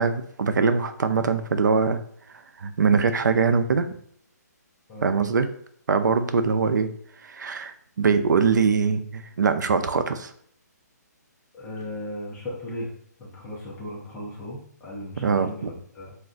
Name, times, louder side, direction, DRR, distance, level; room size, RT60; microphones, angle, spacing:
voice 1, 0.0-2.0 2.6-3.9 5.0-5.5 5.9-6.9 7.2-10.3 15.2-15.7, right 5 dB, 85° right, 9 dB, 0.4 m, -22 dB
voice 2, 11.5-12.9 13.2-16.2, left 1 dB, 10° left, -6 dB, 0.5 m, -36 dB
2.5 x 2.2 x 3.7 m, 0.66 s
hypercardioid pair, 165°, 10 cm